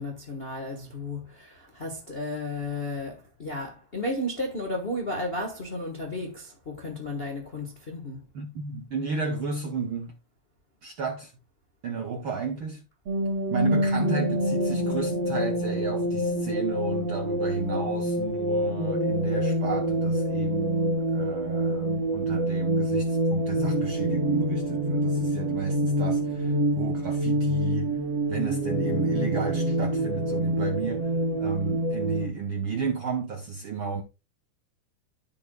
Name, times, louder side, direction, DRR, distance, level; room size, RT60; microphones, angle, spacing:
voice 1, 0.0-8.2, left 1 dB, 80° left, 0.5 m, -33 dB
voice 2, 8.3-10.1 10.8-11.3 11.8-12.8 13.5-28.0 28.3-31.1 31.4-34.0, right 5 dB, 75° right, 1.2 m, -33 dB
sound 1, 13.1-32.3, right 1 dB, 50° right, 3.6 m, -26 dB
14.0 x 5.9 x 2.3 m
omnidirectional pair, 3.6 m